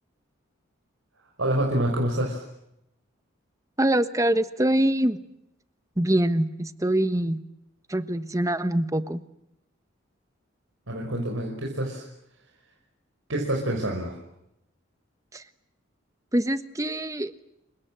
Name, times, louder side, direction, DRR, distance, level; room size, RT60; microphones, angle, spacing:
voice 1, 1.4-2.4 10.9-12.1 13.3-14.2, right 1 dB, 85° right, 0 dB, 5.5 m, -27 dB
voice 2, 3.8-5.2 6.0-7.4 7.9-9.2 15.3-15.4 16.3-17.3, right 1 dB, 15° right, 11 dB, 1.2 m, -24 dB
29.5 x 24.5 x 7.8 m, 0.83 s
head